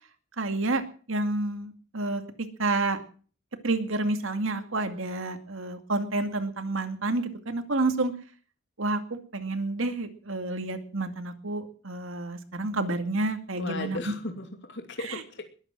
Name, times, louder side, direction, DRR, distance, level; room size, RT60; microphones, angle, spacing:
voice 1, 0.4-0.8 1.1-3.0 3.6-8.1 8.8-14.0 15.0-15.2, right 2 dB, 65° right, 8 dB, 2.2 m, -29 dB
voice 2, 13.6-15.4, left 2 dB, 55° left, 5 dB, 2.6 m, -36 dB
21.0 x 8.8 x 7.5 m, 0.42 s
head